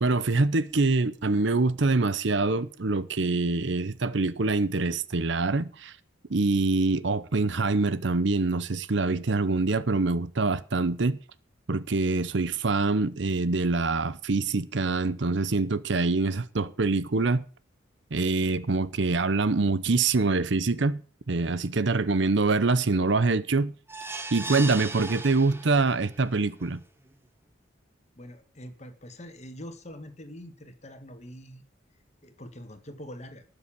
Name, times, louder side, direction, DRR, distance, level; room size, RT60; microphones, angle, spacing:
voice 1, 0.0-5.9 6.3-11.2 11.7-17.4 18.1-21.0 21.3-23.7 24.3-26.8, right 3 dB, 60° right, 0.8 m, -25 dB
sound 1, 23.9-26.1 26.6-26.7 27.1-27.2, right 3 dB, 10° right, 1.2 m, -37 dB
voice 2, 28.2-31.6 32.2-33.5, equal, 35° left, 1.7 m, -44 dB
12.5 x 6.9 x 8.6 m
head